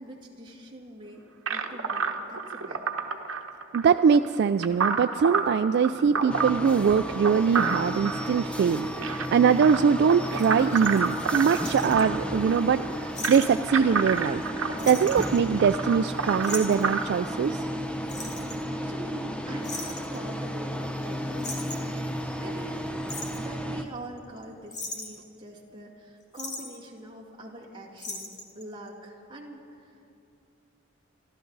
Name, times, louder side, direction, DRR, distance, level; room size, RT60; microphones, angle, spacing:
voice 1, 0.0-2.8 18.2-20.7 21.0-22.1 22.4-23.0 23.3-30.0, right 1 dB, 25° right, -1 dB, 2.1 m, -43 dB
sound 1, 1.5-17.0, right 5 dB, 75° right, 1.1 m, -30 dB
voice 2, 3.7-8.9 9.3-17.7, right 6 dB, 55° right, 11 dB, 0.3 m, -22 dB
sound 2, 6.3-23.8, equal, 5° left, 0.7 m, -33 dB
sound 3, 10.4-12.0 13.2-13.5 13.8-13.9 14.2-14.5 14.8-16.0 16.4-16.9 18.1-18.7 19.6-20.2 21.0-21.1 21.4-22.0 22.8-23.4 24.2-24.4 24.7-25.3 26.3-26.8 28.0-28.6 28.9-29.0, left 2 dB, 35° left, 1.9 m, -38 dB
27.5 x 12.5 x 4.0 m, 2.6 s
head